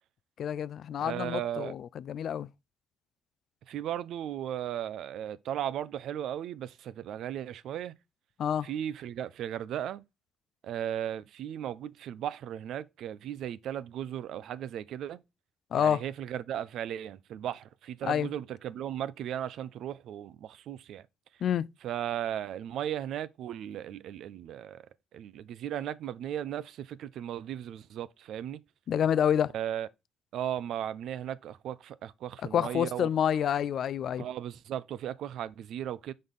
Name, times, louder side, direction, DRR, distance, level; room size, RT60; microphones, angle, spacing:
voice 1, 0.4-2.5 8.4-8.7 15.7-16.0 18.0-18.3 21.4-21.7 28.9-29.5 32.5-34.2, left 9 dB, 65° left, 0.3 m, -28 dB
voice 2, 1.0-1.7 3.7-7.9 8.6-10.0 10.6-15.2 15.8-21.1 21.8-24.8 25.1-28.6 29.5-29.9 30.3-33.1 34.2-36.1, right 10 dB, 75° right, 0.5 m, -36 dB
6.4 x 3.9 x 5.3 m
cardioid pair, 90°, 0 cm